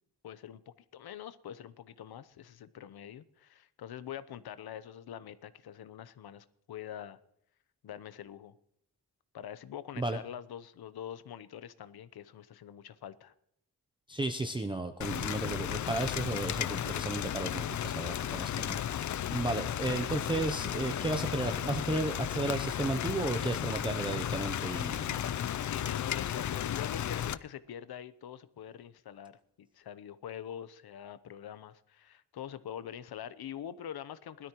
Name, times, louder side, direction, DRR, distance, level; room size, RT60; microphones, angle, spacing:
voice 1, 0.2-7.2 7.8-8.5 9.3-13.3 25.2-34.5, left 10 dB, 65° left, 14 dB, 0.8 m, -45 dB
voice 2, 14.1-25.2, right 2 dB, 10° right, 6 dB, 0.6 m, -34 dB
Rain, 15.0-27.3, left 10 dB, 50° left, 0.4 m, -34 dB
20.5 x 13.0 x 3.0 m, 0.76 s
wide cardioid pair, 170°, 40 cm